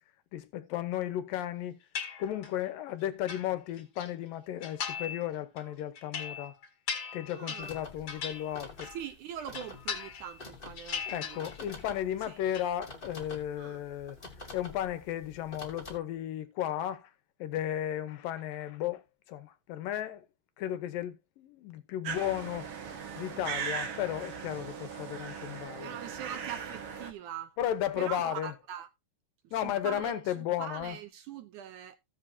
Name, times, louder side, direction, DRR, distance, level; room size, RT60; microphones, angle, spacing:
voice 1, 0.3-1.8 2.2-6.6 7.1-8.9 11.1-14.2 14.5-17.1 17.4-20.3 20.6-22.7 23.2-26.0 27.6-28.5 29.5-31.0, left 11 dB, 75° left, 2.6 m, -34 dB
sound 1, 2.0-2.7 3.0-4.1 4.6-5.3 5.6-9.1 9.4-10.5 10.8-11.8 12.1-12.7, left 7 dB, 45° left, 2.9 m, -39 dB
voice 2, 7.3-7.7 8.8-11.5 12.3-12.4 13.6-13.8 25.8-27.6 28.0-28.9 29.4-32.0, right 10 dB, 75° right, 2.0 m, -42 dB
sound 2, 7.6-16.0, left 3 dB, 20° left, 1.8 m, -48 dB
sound 3, 22.0-27.1, right 7 dB, 50° right, 2.0 m, -39 dB
15.5 x 7.7 x 2.8 m
omnidirectional pair, 4.1 m